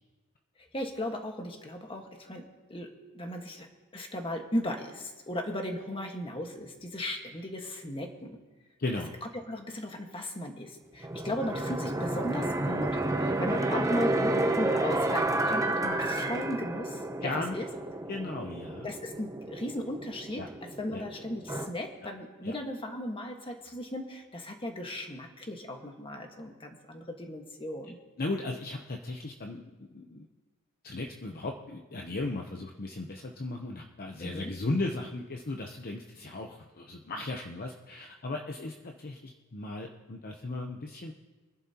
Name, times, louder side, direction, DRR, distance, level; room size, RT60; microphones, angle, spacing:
voice 1, 0.7-2.4 2.7-2.9 3.1-3.7 3.9-8.4 9.5-17.0 17.5-17.7 18.8-28.0 34.2-34.5, left 1 dB, 25° left, 3 dB, 1.5 m, -36 dB
voice 2, 8.8-9.1 17.2-17.6 18.1-18.9 20.4-20.5 20.9-21.0 22.4-22.5 28.2-30.3 30.8-41.1, left 2 dB, 45° left, 2 dB, 0.8 m, -36 dB
sound 1, 11.0-21.7, right 2 dB, 15° right, 0.7 m, -31 dB
24.5 x 11.0 x 2.9 m, 1.3 s
head